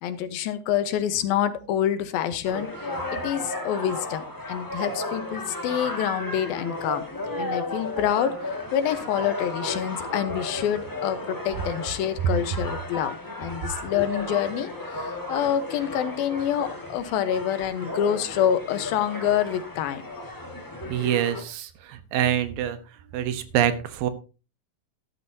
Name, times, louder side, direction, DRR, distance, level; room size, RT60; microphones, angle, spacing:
voice 1, 0.0-2.7 3.1-7.0 7.4-8.3 8.7-20.0 20.9-21.1, left 10 dB, 90° left, 11 dB, 2.9 m, -27 dB
sound 1, 2.4-21.4, left 2 dB, 20° left, 0.5 m, -34 dB
voice 2, 20.9-22.8 23.1-24.1, right 10 dB, 80° right, 11 dB, 2.8 m, -25 dB
13.0 x 12.0 x 2.8 m, 0.32 s
omnidirectional pair, 4.1 m